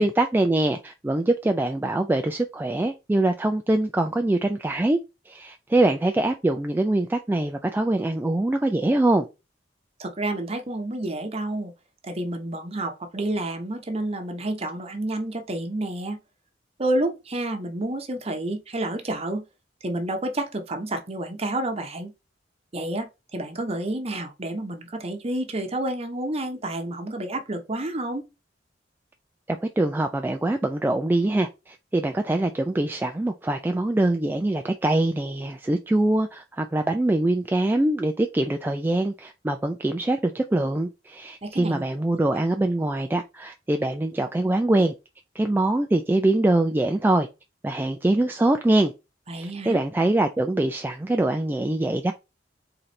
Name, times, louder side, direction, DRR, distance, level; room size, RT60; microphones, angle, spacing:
voice 1, 0.0-5.0 5.3-9.3 29.5-44.9 45.4-47.3 47.6-48.9 49.3-52.1, right 2 dB, 10° right, 0.3 m, -23 dB
voice 2, 10.0-11.7 12.0-16.2 16.8-19.4 19.8-22.1 22.7-28.2 41.4-41.8 49.3-49.8, right 1 dB, 35° right, 0.9 m, -29 dB
3.9 x 3.1 x 4.2 m
head